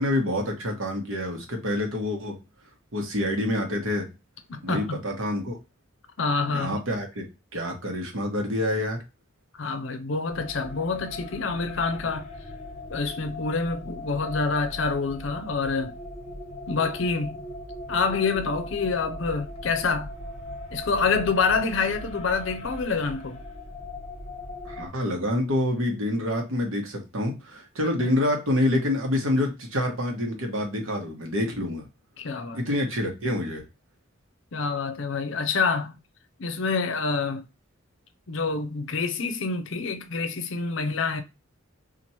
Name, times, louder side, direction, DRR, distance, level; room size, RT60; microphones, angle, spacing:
voice 1, 0.0-2.4 2.9-4.1 4.6-5.6 6.5-7.2 7.5-9.0 24.6-31.9 32.5-33.6, left 1 dB, 75° right, 1.1 m, -27 dB
voice 2, 4.5-5.0 6.2-6.8 9.6-12.3 12.9-15.9 16.7-17.5 17.9-20.1 20.7-23.4 28.0-28.1 32.2-32.6 34.5-36.0 36.4-37.4 38.3-41.2, left 4 dB, 65° left, 0.6 m, -27 dB
sound 1, 10.3-24.9, left 1 dB, 30° left, 0.7 m, -39 dB
3.0 x 2.5 x 4.2 m
head